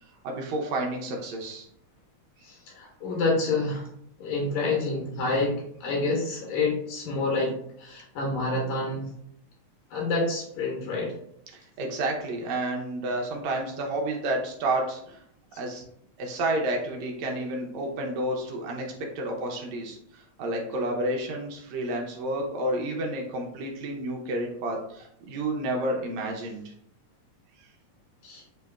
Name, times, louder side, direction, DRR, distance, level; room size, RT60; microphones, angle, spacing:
voice 1, 0.2-1.7 11.5-15.2 15.6-15.8 16.2-26.7, right 1 dB, 75° right, 1 dB, 1.9 m, -30 dB
voice 2, 2.4-3.9 4.2-9.1 9.9-11.2 15.5-15.6 28.2-28.4, left 3 dB, 80° left, -1 dB, 2.1 m, -28 dB
6.4 x 2.9 x 2.3 m, 0.70 s
omnidirectional pair, 3.3 m